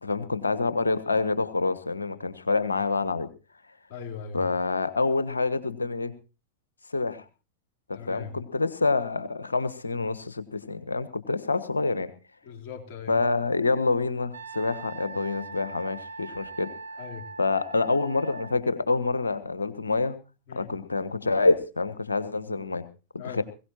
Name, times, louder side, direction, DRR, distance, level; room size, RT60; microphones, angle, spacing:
voice 1, 0.0-3.3 4.3-6.1 6.9-7.2 7.9-12.1 13.1-16.7 17.4-20.2 20.5-22.9 23.1-23.4, left 3 dB, 75° left, 14 dB, 1.3 m, -27 dB
voice 2, 3.9-4.5 7.9-8.3 12.4-13.1 17.0-17.3 20.5-20.7 23.2-23.4, left 7 dB, 50° left, 3 dB, 3.7 m, -39 dB
Wind instrument woodwind instrument, 14.3-18.5, right 4 dB, 70° right, 0.8 m, -41 dB
21.5 x 17.0 x 3.0 m, 0.34 s
figure-of-eight pair, 90°, 0 cm